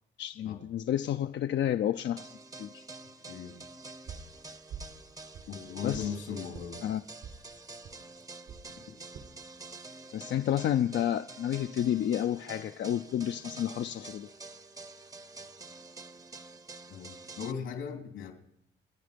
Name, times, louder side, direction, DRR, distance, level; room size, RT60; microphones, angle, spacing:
voice 1, 0.2-2.3 2.6-2.8 5.8-6.1 6.8-7.0 10.1-14.3, left 11 dB, 65° left, 8 dB, 0.6 m, -30 dB
sound 1, 2.2-17.5, right 3 dB, 15° right, 0.8 m, -48 dB
sound 2, 4.1-4.3 4.7-5.0 5.3-6.1 6.5-6.7 7.2-7.4 7.8-8.0 8.5-8.7 9.1-9.3 9.9-10.2, right 6 dB, 75° right, 3.9 m, -45 dB
voice 2, 5.5-6.8 16.9-18.3, left 7 dB, 90° left, 3 dB, 3.4 m, -38 dB
27.0 x 9.8 x 5.2 m, 0.72 s
cardioid pair, 90°, 20 cm